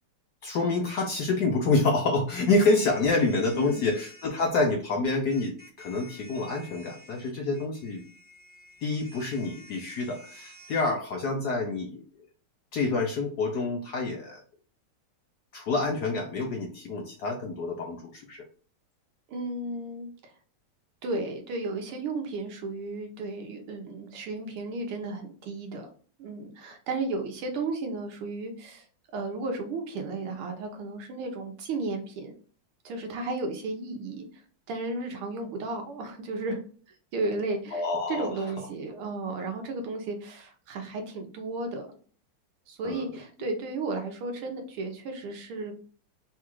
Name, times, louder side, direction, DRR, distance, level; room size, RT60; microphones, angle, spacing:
voice 1, 0.4-8.0 8.8-12.0 12.7-14.4 15.5-18.4 37.7-38.3 42.8-43.1, left 3 dB, 65° left, 1 dB, 1.0 m, -27 dB
sound 1, 2.3-4.3 5.3-10.8, left 2 dB, 10° right, 0.5 m, -51 dB
voice 2, 3.5-3.9 19.3-20.1 21.0-25.9 26.2-28.9 29.1-32.4 32.9-34.3 34.7-36.6 37.1-41.9 42.7-45.8, right 3 dB, 80° right, 4 dB, 1.8 m, -34 dB
4.1 x 2.4 x 4.5 m, 0.42 s
omnidirectional pair, 2.4 m